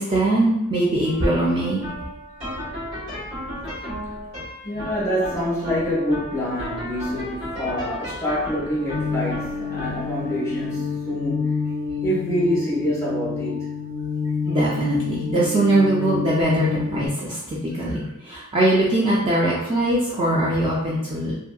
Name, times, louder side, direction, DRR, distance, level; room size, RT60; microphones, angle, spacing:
voice 1, 0.0-1.8 14.5-21.3, right 1 dB, 25° right, -6 dB, 0.4 m, -21 dB
sound 1, 1.0-18.2, equal, 65° right, 1.5 m, -37 dB
voice 2, 4.6-11.5 12.0-13.6, equal, 15° left, -7 dB, 0.9 m, -26 dB
sound 2, 8.9-17.1, left 5 dB, 60° left, 0.4 m, -28 dB
2.6 x 2.6 x 2.3 m, 0.86 s
head